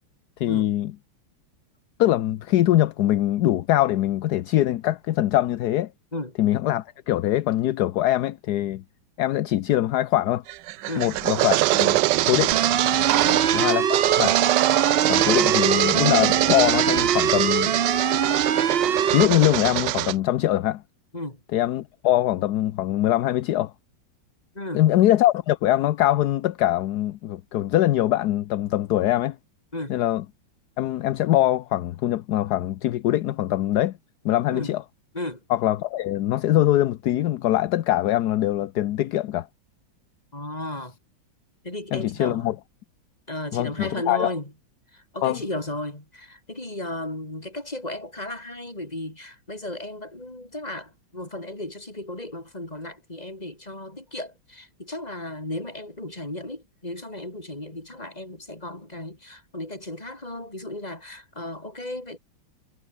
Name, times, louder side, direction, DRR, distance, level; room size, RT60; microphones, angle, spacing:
voice 1, 0.4-0.9 2.0-5.9 6.4-8.8 9.2-10.4 11.0-12.0 12.3-12.5 13.5-14.4 15.1-17.7 19.1-20.8 21.5-23.7 24.7-29.4 29.9-30.2 30.8-34.0 34.2-34.8 35.5-39.5 41.9-42.5 43.5-44.3 45.2-45.4, left 14 dB, 65° left, 1.1 m, -22 dB
sound 1, 10.5-20.1, right 16 dB, 75° right, 1.1 m, -23 dB
sound 2, 12.5-19.2, right 8 dB, 55° right, 0.6 m, -23 dB
voice 2, 13.2-13.5 21.1-21.4 24.5-24.8 29.7-30.0 34.5-34.7 35.1-35.4 40.3-40.9 41.6-42.6 43.3-44.5 44.9-62.2, left 1 dB, 20° left, 4.9 m, -35 dB
omnidirectional pair, 2.1 m